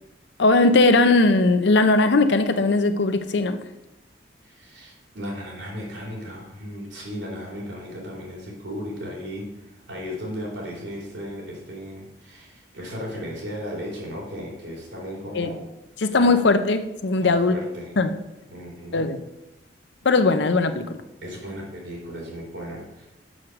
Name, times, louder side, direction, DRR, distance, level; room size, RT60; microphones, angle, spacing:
voice 1, 0.4-3.6 15.3-15.6 16.0-17.6 18.0-18.1 18.9-19.2 20.0-21.0, left 3 dB, 70° left, 9 dB, 0.6 m, -19 dB
voice 2, 4.4-15.6 16.2-16.4 17.2-17.9 18.5-19.1 21.2-23.1, equal, 80° right, -2 dB, 3.3 m, -36 dB
6.4 x 6.4 x 5.9 m, 0.96 s
head